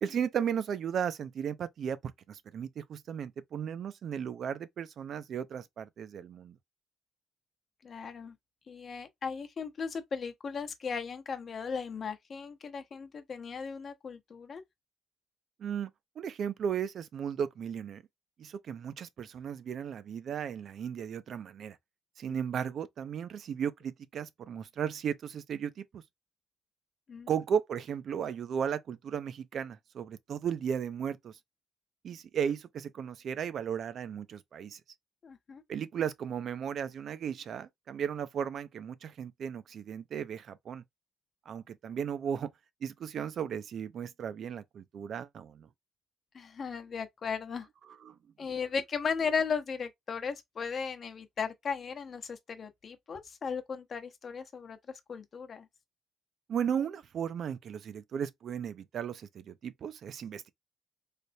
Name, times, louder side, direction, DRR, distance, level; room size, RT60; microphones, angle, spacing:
voice 1, 0.0-2.0 2.3-6.6 15.6-15.9 16.2-18.0 18.4-21.8 22.2-26.0 27.3-31.4 32.0-34.8 35.7-40.8 41.5-42.5 42.8-45.7 48.0-48.2 56.5-60.5, right 8 dB, 60° right, 0.4 m, -35 dB
voice 2, 7.8-8.4 8.7-14.6 22.3-22.4 27.1-27.3 35.2-35.6 46.3-47.7 48.4-54.8 55.1-55.7, left 5 dB, 50° left, 0.8 m, -36 dB
3.3 x 2.1 x 4.0 m
cardioid pair, 90°, 0 cm